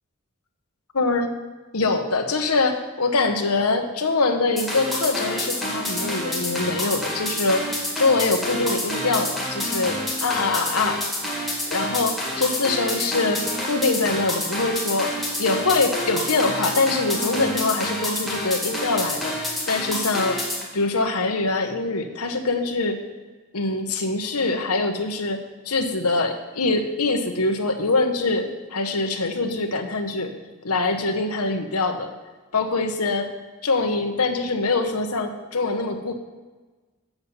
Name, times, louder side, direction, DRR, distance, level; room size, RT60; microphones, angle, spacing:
voice 1, 0.9-1.3 1.7-7.7 8.0-11.0 11.7-15.1 15.4-20.4 20.7-23.0 23.5-25.4 25.6-30.3 30.6-32.1 32.5-33.3 33.6-36.1, left 3 dB, 85° left, 5 dB, 1.2 m, -24 dB
sound 1, 4.6-20.6, left 1 dB, ahead, 2.0 m, -28 dB
8.1 x 7.8 x 5.5 m, 1.3 s
head